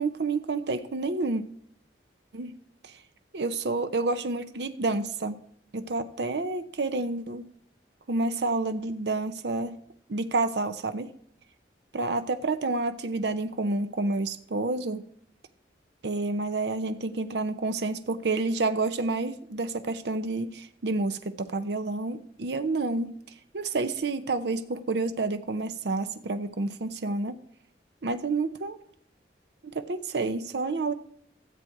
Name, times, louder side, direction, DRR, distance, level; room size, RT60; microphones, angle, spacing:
voice 1, 0.0-1.4 2.3-2.5 2.8-3.0 3.3-5.4 5.7-7.5 8.1-9.8 10.1-11.1 11.9-15.1 16.0-23.1 23.5-27.4 28.0-28.8 29.6-30.9, right 3 dB, 70° right, 10 dB, 0.7 m, -29 dB
13.5 x 7.8 x 4.7 m, 0.66 s
head